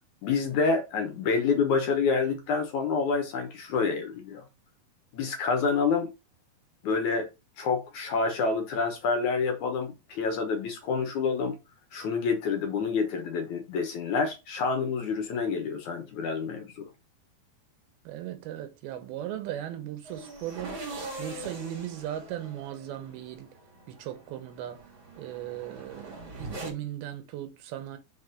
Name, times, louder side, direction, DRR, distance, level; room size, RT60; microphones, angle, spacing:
voice 1, 0.2-4.4 5.1-6.1 6.8-7.3 7.6-11.6 11.9-16.9, left 5 dB, 65° left, 2.2 m, -28 dB
voice 2, 18.1-20.9 21.2-23.5 23.9-24.8 25.2-28.0, right 11 dB, 85° right, 2.9 m, -37 dB
sound 1, 20.0-26.7, right 2 dB, 35° right, 3.5 m, -42 dB
6.0 x 4.2 x 5.0 m
omnidirectional pair, 4.3 m